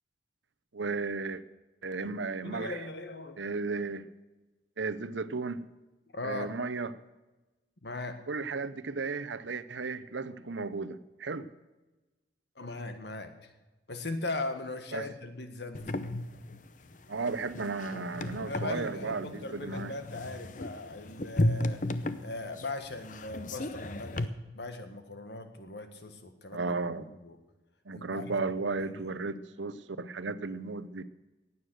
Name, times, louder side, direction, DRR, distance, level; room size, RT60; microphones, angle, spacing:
voice 1, 0.7-1.4 1.8-2.8 3.4-4.1 4.8-5.7 6.2-6.9 8.3-11.5 14.9-15.1 17.1-19.9 26.5-27.1 27.9-31.0, right 4 dB, 80° right, 14 dB, 0.8 m, -34 dB
voice 2, 2.4-3.4 6.1-6.5 7.8-8.2 12.6-13.5 13.9-15.8 18.5-21.8 22.2-24.3 24.5-27.4 27.9-28.3 28.9-29.1, left 2 dB, 65° left, 8 dB, 1.6 m, -39 dB
sound 1, 15.7-24.3, left 1 dB, 45° left, 0.7 m, -34 dB
16.0 x 9.6 x 6.4 m, 1.1 s
head